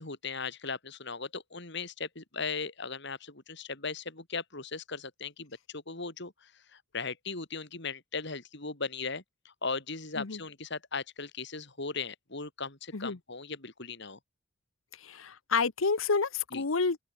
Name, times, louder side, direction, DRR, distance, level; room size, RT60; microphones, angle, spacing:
voice 1, 0.0-14.2 16.5-16.6, left 4 dB, 60° left, 4.0 m, -38 dB
voice 2, 15.0-17.0, left 4 dB, 85° left, 1.0 m, -29 dB
open air
head